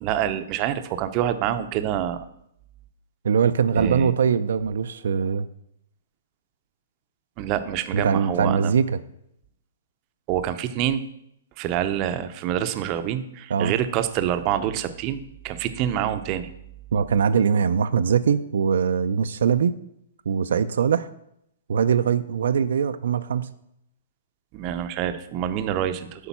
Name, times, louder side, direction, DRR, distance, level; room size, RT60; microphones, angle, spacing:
voice 1, 0.0-2.2 3.7-4.1 7.4-8.7 10.3-11.0 11.6-16.5 24.5-26.3, right 10 dB, 30° right, 10 dB, 0.6 m, -26 dB
voice 2, 3.2-5.5 7.9-9.0 13.5-13.7 16.9-19.7 20.3-21.1 21.7-23.5, right 7 dB, 75° right, 10 dB, 0.4 m, -22 dB
8.2 x 5.2 x 5.8 m, 0.76 s
hypercardioid pair, 155°, 0 cm